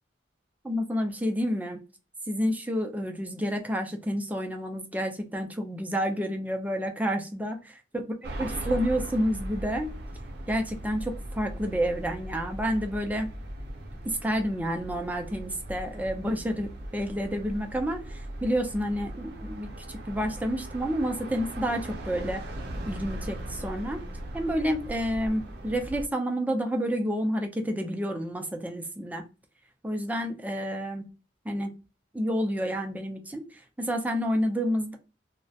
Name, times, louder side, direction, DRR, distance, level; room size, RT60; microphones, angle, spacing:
voice 1, 0.6-1.8 2.3-7.6 7.9-8.0 8.4-9.9 10.5-13.3 14.0-22.4 22.9-24.0 24.3-29.2 29.8-31.1 31.4-31.7 32.1-35.0, equal, 10° right, 4 dB, 0.4 m, -29 dB
sound 1, 8.2-26.1, right 1 dB, 60° right, 0.6 m, -39 dB
2.7 x 2.1 x 2.3 m, 0.30 s
head